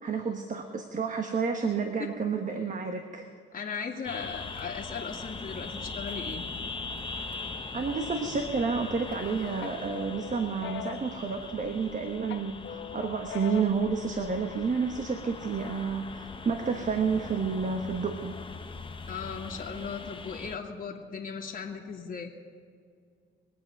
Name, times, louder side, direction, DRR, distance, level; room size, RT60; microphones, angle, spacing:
voice 1, 0.0-3.3 7.7-18.3, right 5 dB, 40° right, 5 dB, 1.3 m, -30 dB
voice 2, 3.5-6.4 19.1-22.3, left 6 dB, 45° left, -1 dB, 2.0 m, -37 dB
sound 1, 4.0-20.6, left 4 dB, 25° left, 1.0 m, -41 dB
sound 2, 8.6-9.2 9.6-11.9 12.3-13.9, left 8 dB, 70° left, 1.0 m, -41 dB
22.5 x 8.7 x 5.3 m, 2.2 s
cardioid pair, 90°, 20 cm